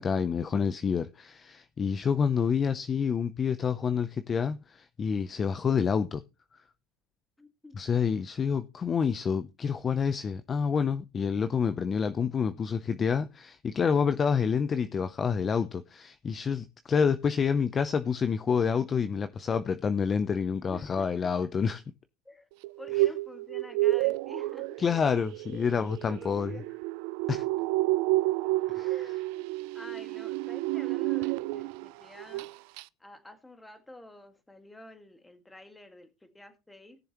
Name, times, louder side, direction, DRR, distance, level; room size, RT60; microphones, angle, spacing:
voice 1, 0.0-6.2 7.7-21.8 24.8-26.5 27.3-27.4 28.7-28.9, left 6 dB, 25° left, 0.6 m, -28 dB
voice 2, 7.4-7.8 20.7-21.3 22.3-22.5 22.8-24.8 25.5-25.7 26.1-26.8 28.8-29.5 29.7-32.5 33.0-37.0, left 1 dB, 10° left, 1.8 m, -49 dB
sound 1, 22.6-31.9 32.2-32.5 32.8-32.9, right 18 dB, 70° right, 0.4 m, -30 dB
19.0 x 7.0 x 3.0 m
supercardioid pair, 130°, 0 cm